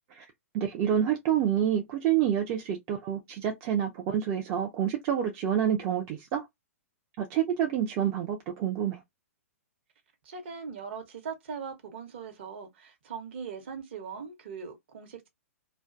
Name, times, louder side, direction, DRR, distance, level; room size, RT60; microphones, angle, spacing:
voice 1, 0.5-6.5 7.2-9.0, right 9 dB, 30° right, 0.4 m, -28 dB
voice 2, 10.2-15.3, right 6 dB, 50° right, 0.8 m, -40 dB
2.4 x 2.2 x 2.4 m
figure-of-eight pair, 115°, 8 cm